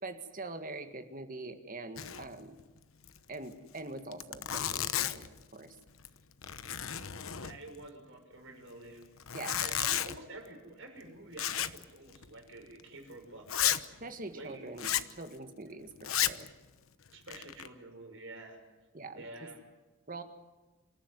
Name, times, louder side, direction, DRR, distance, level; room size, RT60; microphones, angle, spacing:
voice 1, 0.0-2.6 3.3-5.8 9.3-9.6 14.0-16.5 18.9-19.3 20.1-20.2, right 2 dB, 40° right, 7 dB, 1.9 m, -44 dB
Zipper (clothing), 2.0-2.3 2.6-2.7 3.0-3.2 3.8-3.9 4.1-5.4 5.9-6.2 6.4-7.8 9.2-10.2 11.4-11.8 12.1-12.3 12.8-12.9 13.5-13.8 14.8-15.1 16.0-16.5 17.1-17.7, left 11 dB, 80° left, 1.0 m, -33 dB
voice 2, 7.3-9.0 9.4-13.6 14.3-14.7 17.1-18.6 19.1-19.6, right 2 dB, 65° right, 2 dB, 6.4 m, -48 dB
27.5 x 14.0 x 9.5 m, 1.2 s
head